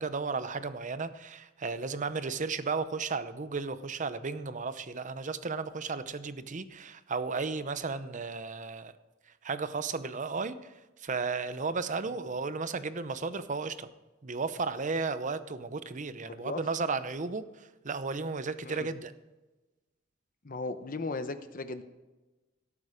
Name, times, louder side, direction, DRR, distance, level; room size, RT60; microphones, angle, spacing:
voice 1, 0.0-8.9 9.4-10.7 11.0-13.9 14.2-19.1, right 4 dB, 40° right, 13 dB, 0.7 m, -34 dB
voice 2, 16.3-16.6 18.6-18.9 20.4-21.8, left 3 dB, 45° left, 10 dB, 0.9 m, -36 dB
17.5 x 8.6 x 5.1 m, 1.1 s
head